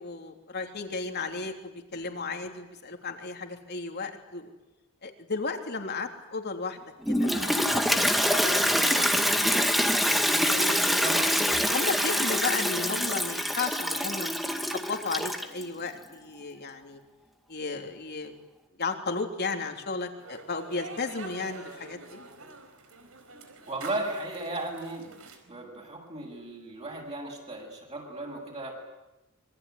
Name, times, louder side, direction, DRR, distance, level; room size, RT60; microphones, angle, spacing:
voice 1, 0.0-4.5 5.0-6.8 7.1-9.1 9.4-10.0 10.5-11.0 11.5-14.3 14.6-17.0 17.5-18.3 18.8-22.2, left 4 dB, 50° left, 4 dB, 3.4 m, -34 dB
Toilet flush, 7.0-15.6, equal, ahead, 2.0 m, -25 dB
voice 2, 11.0-11.3 23.6-25.2 25.5-28.7, right 2 dB, 30° right, -1 dB, 7.6 m, -36 dB
sound 1, 20.2-25.4, right 3 dB, 75° right, 4.6 m, -46 dB
26.5 x 23.5 x 9.5 m, 0.99 s
head